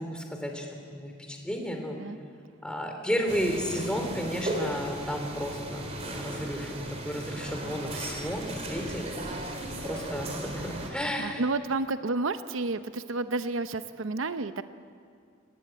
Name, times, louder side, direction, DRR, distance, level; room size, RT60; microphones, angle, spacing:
voice 1, 0.0-2.0 2.6-5.9 6.2-6.7 7.0-9.1 9.8-11.4, equal, 5° left, 3 dB, 3.1 m, -32 dB
sound 1, 3.3-10.9, right 1 dB, 30° right, 3.4 m, -36 dB
voice 2, 9.5-10.1 10.8-14.6, right 3 dB, 80° right, 11 dB, 0.8 m, -32 dB
27.5 x 18.5 x 9.1 m, 2.2 s
head